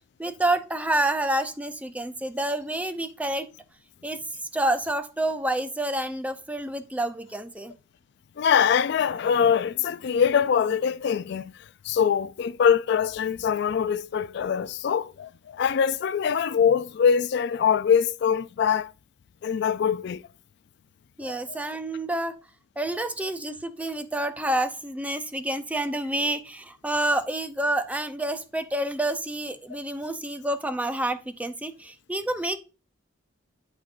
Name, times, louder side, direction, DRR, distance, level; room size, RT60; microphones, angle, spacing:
voice 1, 0.2-3.5 4.0-4.2 4.5-7.7 21.2-22.4 22.8-32.6, right 1 dB, 10° right, 0.5 m, -28 dB
voice 2, 8.4-11.5 11.8-18.9 19.4-20.2 21.5-21.6, left 7 dB, 65° left, 0.3 m, -23 dB
10.5 x 4.4 x 2.5 m
head